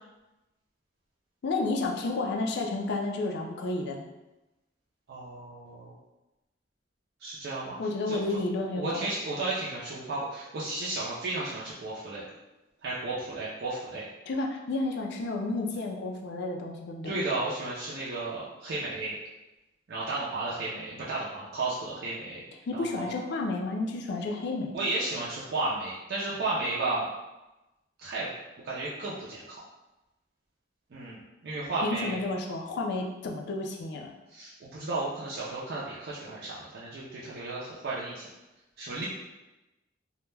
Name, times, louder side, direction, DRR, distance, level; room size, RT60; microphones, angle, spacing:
voice 1, 1.4-4.1 7.8-9.1 14.3-17.1 22.7-24.7 31.8-34.1, left 2 dB, 60° left, 1 dB, 0.4 m, -31 dB
voice 2, 5.1-6.0 7.2-7.8 8.1-8.2 8.7-12.2 12.8-14.1 17.0-19.2 19.9-23.1 24.7-27.1 28.0-28.3 28.6-29.6 30.9-32.2 34.3-38.3 38.8-39.0, right 2 dB, 55° right, -7 dB, 0.4 m, -33 dB
2.2 x 2.1 x 3.1 m, 1.0 s
head